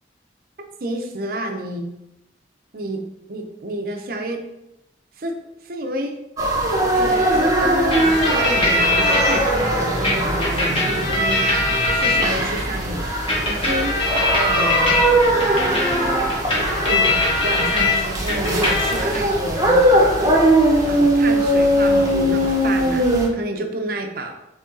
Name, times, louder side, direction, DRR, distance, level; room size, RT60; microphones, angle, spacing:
voice 1, 0.8-1.9 2.7-4.4 5.2-5.4 5.6-6.2 6.9-11.4 11.9-13.1 13.5-14.0 14.4-15.0 16.9-20.1 20.8-23.1 23.3-24.4, right 1 dB, 55° right, 4 dB, 0.6 m, -29 dB
sound 1, 6.4-23.3, right 1 dB, 20° right, 0.8 m, -20 dB
sound 2, 7.9-9.4 10.0-12.6 13.3-18.0 18.3-19.2, left 2 dB, 30° left, 1.1 m, -21 dB
3.8 x 3.3 x 3.8 m, 0.88 s
head